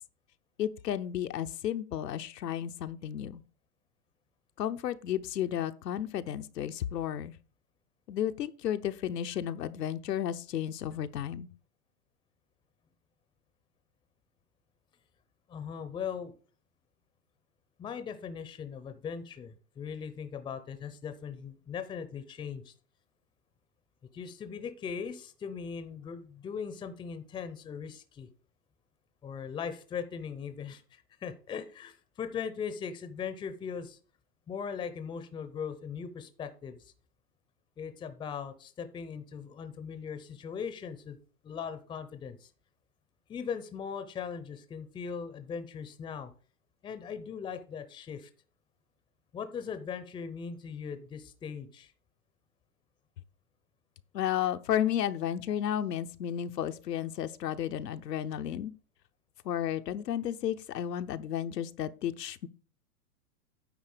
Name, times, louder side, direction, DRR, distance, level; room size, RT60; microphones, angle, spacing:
voice 1, 0.6-3.4 4.6-7.3 8.1-11.5 54.1-58.7 59.4-62.5, left 10 dB, 85° left, 0.9 m, -33 dB
voice 2, 15.5-16.3 17.8-22.7 24.1-28.3 29.2-34.0 34.5-36.9 37.8-41.2 41.4-42.5 43.3-46.3 46.8-48.3 49.3-51.9, left 6 dB, 10° left, 0.6 m, -39 dB
9.5 x 4.0 x 6.7 m
hypercardioid pair, 125°, 47 cm